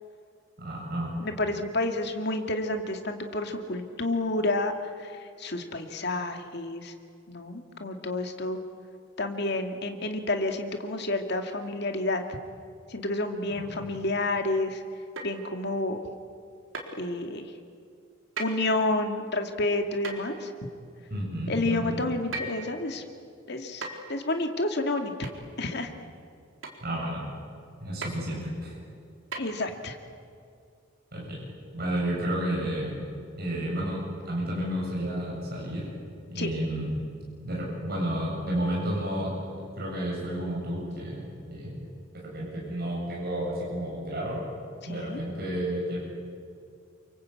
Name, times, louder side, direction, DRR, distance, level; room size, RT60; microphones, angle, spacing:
voice 1, 0.6-1.1 21.1-22.0 26.8-27.2 27.8-28.8 31.1-31.4 31.7-33.0 33.4-35.9 36.3-37.0 37.4-41.8 42.1-44.4 44.8-46.0, right 1 dB, 50° right, -4 dB, 7.7 m, -31 dB
voice 2, 1.2-6.9 7.3-8.6 9.2-12.2 12.9-14.8 15.2-16.0 17.0-17.5 18.4-20.5 21.5-23.0 23.5-25.3 25.6-25.9 29.4-30.0 36.4-36.5 44.9-45.2, left 2 dB, 55° left, 5 dB, 2.3 m, -30 dB
sound 1, 15.2-15.5 16.7-17.0 18.4-18.6 20.0-20.3 22.3-22.7 23.8-24.1 25.2-25.4 26.6-26.8 28.0-28.2 29.3-29.4, right 3 dB, 75° right, 3.9 m, -36 dB
28.5 x 24.5 x 8.6 m, 2.3 s
head